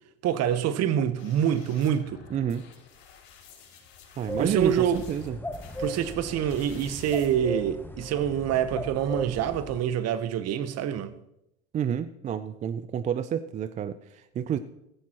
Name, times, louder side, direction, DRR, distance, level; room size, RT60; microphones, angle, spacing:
voice 1, 0.2-2.2 4.4-5.0 5.8-11.1, right 9 dB, 40° right, 1.0 m, -26 dB
sound 1, 1.2-7.3, left 6 dB, 65° left, 6.0 m, -51 dB
voice 2, 2.3-2.7 4.2-5.4 11.7-14.6, right 9 dB, 20° right, 0.3 m, -29 dB
sound 2, 4.3-9.8, equal, 5° left, 1.0 m, -37 dB
16.0 x 13.5 x 3.0 m
hypercardioid pair, 105°, 39 cm